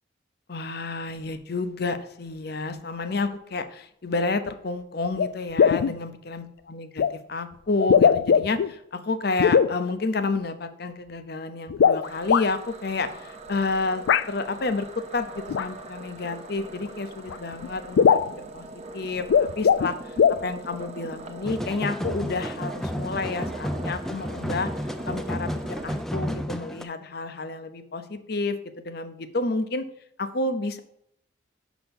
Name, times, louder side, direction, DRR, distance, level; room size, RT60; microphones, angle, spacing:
voice 1, 0.5-18.7 18.9-20.2 20.4-24.7 25.1-29.9 30.2-30.8, left 3 dB, 60° left, 10 dB, 0.7 m, -30 dB
sound 1, 4.5-4.6 5.2-5.3 5.6-6.0 7.0-7.1 7.8-8.7 9.4-9.7 11.7-12.4 14.1-14.2 15.5-15.6 16.8-16.9 17.3-17.4 17.6-17.7 18.0-18.3 19.2-19.9 20.2-20.4, left 7 dB, 80° left, 0.3 m, -19 dB
sound 2, 12.0-26.0, right 2 dB, 35° right, 0.8 m, -42 dB
sound 3, 21.4-26.8, equal, ahead, 0.3 m, -32 dB
6.1 x 5.7 x 5.2 m, 0.73 s
head